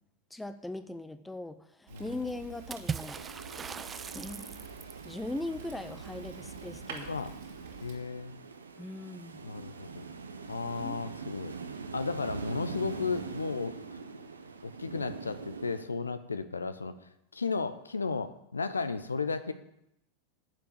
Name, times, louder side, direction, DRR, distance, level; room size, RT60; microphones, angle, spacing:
voice 1, 0.3-3.2 4.1-4.7 5.0-7.1 8.8-9.4 10.8-11.0, left 2 dB, 5° left, 11 dB, 0.8 m, -40 dB
Fire, 1.9-8.0, right 5 dB, 60° right, 2.7 m, -48 dB
Water / Splash splatter, 2.7-5.1, right 6 dB, 20° right, 0.3 m, -39 dB
sound 1, 3.1-15.8, right 4 dB, 75° right, 1.0 m, -43 dB
voice 2, 7.0-7.3 7.8-8.3 9.4-10.1 10.5-11.6 11.9-13.7 14.6-19.5, left 4 dB, 75° left, 11 dB, 0.8 m, -34 dB
10.0 x 7.0 x 8.7 m, 0.80 s
figure-of-eight pair, 90°, 0 cm